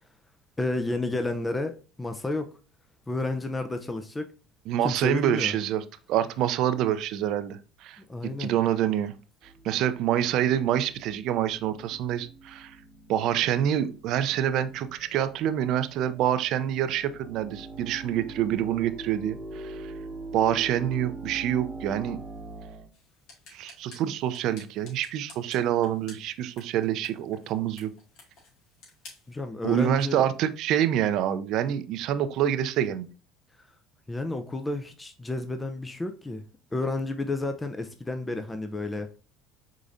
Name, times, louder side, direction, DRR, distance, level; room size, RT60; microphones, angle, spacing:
voice 1, 0.6-2.5 3.1-4.3 4.8-5.5 8.1-8.5 29.3-30.2 34.1-36.4 36.7-39.1, left 2 dB, 15° left, 0.6 m, -31 dB
voice 2, 4.7-8.0 8.4-9.1 9.6-12.8 13.1-19.9 20.3-22.2 23.5-27.9 29.6-33.1, right 10 dB, 65° right, 0.5 m, -26 dB
sound 1, 9.4-22.9, right 2 dB, 10° right, 1.2 m, -43 dB
sound 2, 22.9-29.4, left 3 dB, 65° left, 2.2 m, -53 dB
5.0 x 3.7 x 2.6 m
supercardioid pair, 85°, 0 cm